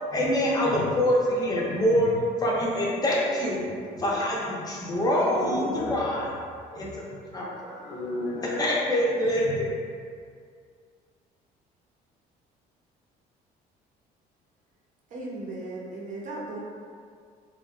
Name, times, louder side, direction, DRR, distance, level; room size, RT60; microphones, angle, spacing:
voice 1, 0.1-2.1 2.4-3.6 4.0-6.3 6.7-7.5 8.6-9.7, equal, 20° left, -4 dB, 0.5 m, -25 dB
voice 2, 4.8-6.1 7.6-8.6, left 1 dB, 90° left, -5 dB, 0.6 m, -33 dB
voice 3, 15.1-16.6, right 2 dB, 50° right, -4 dB, 0.6 m, -36 dB
2.5 x 2.1 x 2.4 m, 2.2 s
cardioid pair, 110°, 17 cm